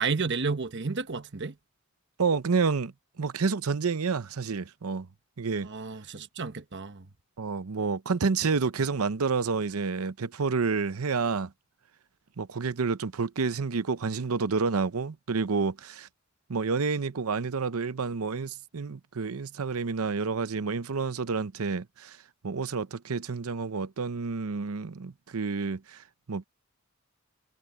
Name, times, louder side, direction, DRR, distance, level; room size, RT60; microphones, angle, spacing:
voice 1, 0.0-1.5 5.6-7.1, right 4 dB, 55° right, 1.1 m, -31 dB
voice 2, 2.2-5.1 5.4-5.7 7.4-11.5 12.4-16.1 16.5-22.2 22.4-26.4, right 4 dB, 85° right, 0.7 m, -29 dB
head